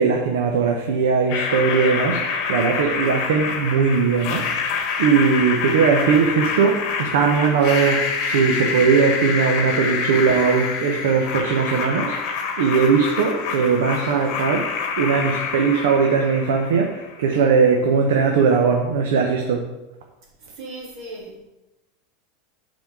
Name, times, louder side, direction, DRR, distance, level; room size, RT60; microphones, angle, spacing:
voice 1, 0.0-19.7, right 5 dB, 85° right, 2 dB, 0.9 m, -19 dB
sound 1, 1.3-17.2, left 5 dB, 45° left, 1.2 m, -26 dB
voice 2, 20.5-21.5, right 2 dB, 45° right, -3 dB, 2.8 m, -37 dB
8.3 x 4.2 x 4.8 m, 1.0 s
supercardioid pair, 155°, 0 cm